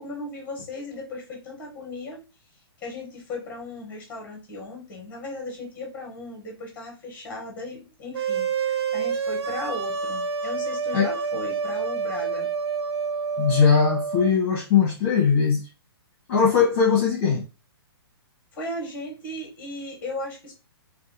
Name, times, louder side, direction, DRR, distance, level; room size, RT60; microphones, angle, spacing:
voice 1, 0.0-2.2 2.8-12.5 18.5-20.5, left 2 dB, 10° left, 0 dB, 1.5 m, -36 dB
sound 1, 8.1-14.3, right 5 dB, 80° right, 0.6 m, -28 dB
voice 2, 13.4-15.6 16.3-17.4, left 6 dB, 30° left, -1 dB, 1.1 m, -20 dB
3.6 x 2.3 x 4.0 m, 0.31 s
hypercardioid pair, 165°, 14 cm